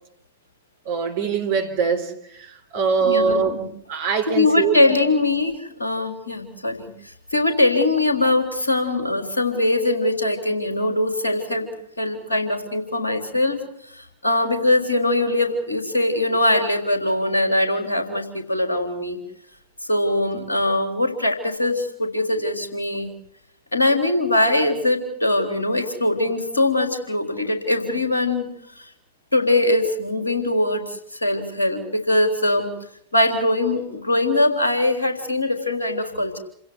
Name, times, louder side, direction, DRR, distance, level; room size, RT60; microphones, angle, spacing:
voice 1, 0.9-3.6 3.9-5.0, right 6 dB, 55° right, 3.7 m, -23 dB
voice 2, 3.0-3.6 4.3-11.7 12.0-13.6 13.9-19.2 19.9-23.1 23.7-28.5 28.8-28.9 29.3-32.7 33.1-36.4, left 2 dB, 75° left, 3.7 m, -22 dB
28.5 x 16.5 x 8.2 m
figure-of-eight pair, 90°, 0 cm